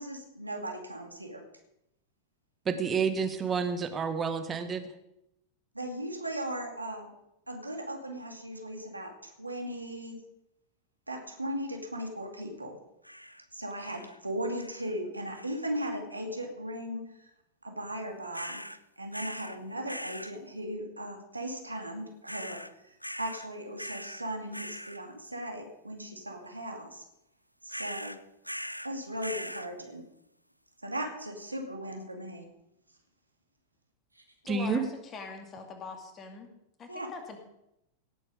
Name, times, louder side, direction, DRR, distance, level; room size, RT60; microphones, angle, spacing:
voice 1, 0.0-1.4 5.7-7.1 7.5-10.2 11.1-12.8 13.5-17.3 17.6-18.6 19.0-27.0 27.6-28.1 28.8-30.0 30.8-32.5 34.2-34.3 36.9-37.1, right 1 dB, 85° right, 3 dB, 2.2 m, -37 dB
voice 2, 2.6-4.9 34.5-34.8, right 5 dB, 20° right, 8 dB, 1.5 m, -29 dB
sound 1, 13.0-13.4 13.8-14.2 14.6-14.9 15.3-15.8 18.3-18.8 19.1-19.6 19.9-20.3 22.3-22.7 23.0-23.5 23.8-24.2 24.5-25.0 27.7-28.9 29.2-29.7, equal, 90° left, 0.5 m, -41 dB
voice 3, 34.4-34.9 35.1-36.5 36.8-37.4, left 5 dB, 25° left, 4 dB, 2.4 m, -42 dB
17.5 x 8.3 x 5.2 m, 0.83 s
figure-of-eight pair, 90°, 0 cm